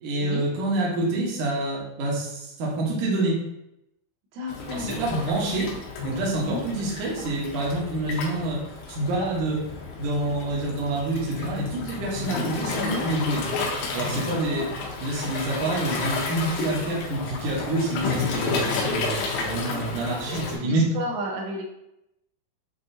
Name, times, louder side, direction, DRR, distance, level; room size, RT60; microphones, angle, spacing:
voice 1, 0.0-3.4 4.7-5.7 6.0-8.6 8.9-9.7 10.0-13.4 13.9-14.7 15.0-20.9, right 2 dB, 65° right, -4 dB, 2.1 m, -27 dB
voice 2, 4.3-5.1 6.4-6.6 12.8-13.0 14.5-14.7 19.7-20.0 20.3-21.7, equal, 90° right, -1 dB, 3.0 m, -33 dB
Waves surf, 4.5-20.6, left 4 dB, 85° left, 3.0 m, -31 dB
7.6 x 2.5 x 2.6 m, 0.85 s
omnidirectional pair, 4.9 m